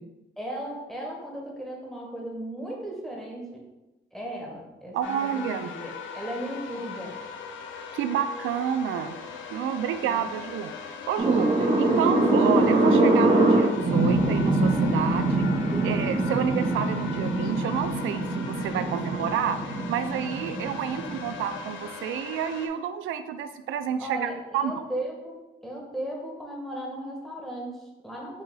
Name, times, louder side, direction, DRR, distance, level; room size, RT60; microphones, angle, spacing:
voice 1, 0.4-3.6 4.1-5.4 5.7-7.2 10.1-10.2 15.7-16.1 18.7-18.9 24.0-25.4 25.6-28.4, right 1 dB, ahead, -2 dB, 1.3 m, -36 dB
voice 2, 4.9-5.7 7.9-9.2 9.5-15.5 15.8-24.7, right 8 dB, 80° right, 11 dB, 0.4 m, -29 dB
sound 1, 5.0-22.7, left 5 dB, 75° left, 0.6 m, -40 dB
sound 2, 11.2-21.5, right 2 dB, 30° right, 0.8 m, -24 dB
4.9 x 2.7 x 3.7 m, 1.0 s
cardioid pair, 90°, 20 cm